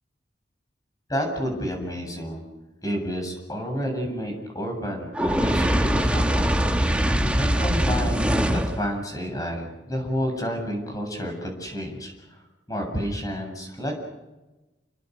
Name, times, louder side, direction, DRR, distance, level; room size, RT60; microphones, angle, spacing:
voice 1, 1.1-2.4 2.8-6.9 7.4-12.4 12.7-13.9, equal, 20° left, 3 dB, 7.9 m, -30 dB
Fire, 5.1-8.8, equal, 5° right, 1.7 m, -22 dB
30.0 x 25.0 x 6.5 m, 1.1 s
head